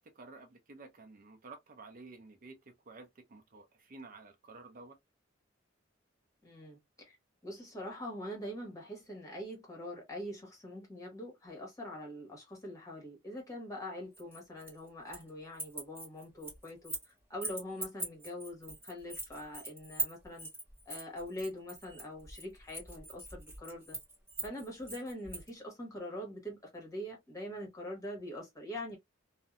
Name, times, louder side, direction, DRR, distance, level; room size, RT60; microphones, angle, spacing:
voice 1, 0.0-5.0, right 3 dB, 45° right, 0.5 m, -52 dB
voice 2, 6.4-6.8 7.0-7.2 7.4-20.5 20.9-24.0 24.4-29.0, left 1 dB, 15° left, 1.3 m, -43 dB
sound 1, 14.1-15.3 15.5-17.1 17.4-25.5, right 2 dB, 10° right, 1.5 m, -41 dB
2.6 x 2.1 x 2.3 m
head